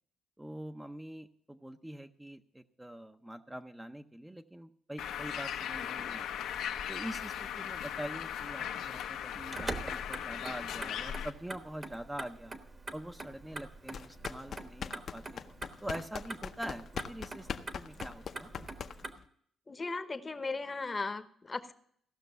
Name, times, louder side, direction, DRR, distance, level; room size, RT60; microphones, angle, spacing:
voice 1, 0.4-6.3 6.9-12.6 12.9-15.4 15.8-17.5 17.7-18.5, right 1 dB, 10° right, 6 dB, 0.6 m, -44 dB
Bird, 5.0-11.3, left 9 dB, 85° left, 0.8 m, -38 dB
Motor vehicle (road), 9.3-19.1, right 2 dB, 30° right, 1.1 m, -44 dB
sound 1, 13.9-19.2, left 7 dB, 55° left, 0.7 m, -42 dB
voice 2, 19.7-21.7, left 3 dB, 25° left, 11 dB, 0.9 m, -37 dB
16.0 x 6.0 x 6.8 m, 0.65 s
cardioid pair, 90°, 0 cm